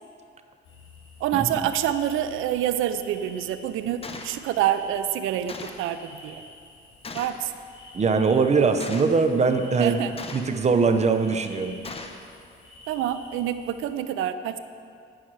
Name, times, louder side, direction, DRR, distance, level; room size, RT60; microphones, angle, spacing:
sound 1, 0.6-13.9, left 2 dB, 85° left, 2.3 m, -49 dB
voice 1, 1.2-6.4 7.1-7.5 9.8-10.1 12.9-14.6, right 11 dB, 90° right, 11 dB, 0.6 m, -27 dB
Gunshot gunfire, 4.0-4.4 5.5-5.9 7.0-7.4 8.8-9.2 10.2-10.6 11.8-12.2, left 3 dB, 30° left, 0.9 m, -38 dB
voice 2, 7.9-10.0 10.3-11.7, right 4 dB, 35° right, 7 dB, 0.9 m, -21 dB
15.5 x 5.7 x 4.8 m, 2.3 s
cardioid pair, 90°, 20 cm